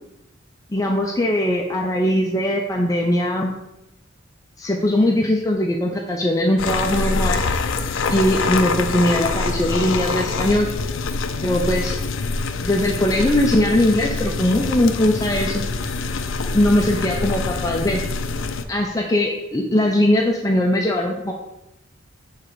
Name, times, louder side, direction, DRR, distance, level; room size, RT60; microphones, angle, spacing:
voice 1, 0.7-3.5 4.6-7.4 8.1-10.7 11.4-12.0 12.6-15.6 16.5-18.0 18.7-21.3, left 1 dB, 15° left, 0 dB, 0.4 m, -20 dB
sound 1, 6.6-18.6, left 3 dB, 75° left, 0.5 m, -25 dB
6.7 x 3.7 x 4.5 m, 0.89 s
head